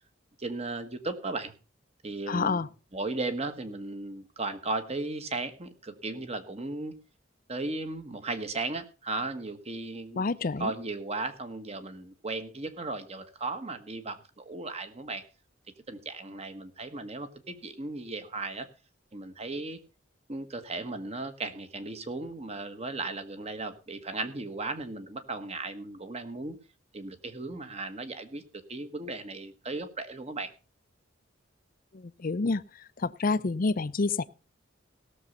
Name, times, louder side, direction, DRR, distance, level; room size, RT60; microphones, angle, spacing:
voice 1, 0.4-1.5 2.0-2.6 2.9-7.0 7.5-10.3 10.6-15.2 15.9-18.7 19.1-19.8 20.3-26.6 26.9-28.4 28.7-30.5, right 2 dB, 35° right, 1.4 m, -36 dB
voice 2, 2.3-2.7 10.2-10.7 31.9-32.6 33.0-34.2, left 3 dB, 45° left, 0.6 m, -28 dB
17.0 x 7.1 x 5.3 m
head